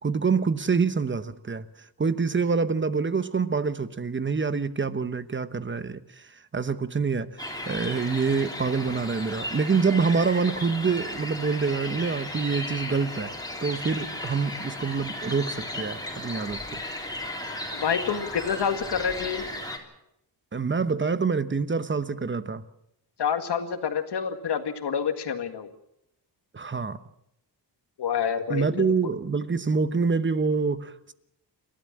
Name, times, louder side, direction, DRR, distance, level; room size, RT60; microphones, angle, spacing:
voice 1, 0.0-13.3 13.6-16.8 20.5-22.6 26.5-27.0 28.5-31.1, right 5 dB, 25° right, 1.0 m, -26 dB
sound 1, 7.4-19.8, left 1 dB, 10° left, 3.4 m, -35 dB
voice 2, 17.7-19.5 23.2-25.7 28.0-28.7 29.0-29.2, left 7 dB, 70° left, 2.0 m, -28 dB
28.5 x 12.5 x 7.5 m
wide cardioid pair, 105°, 43 cm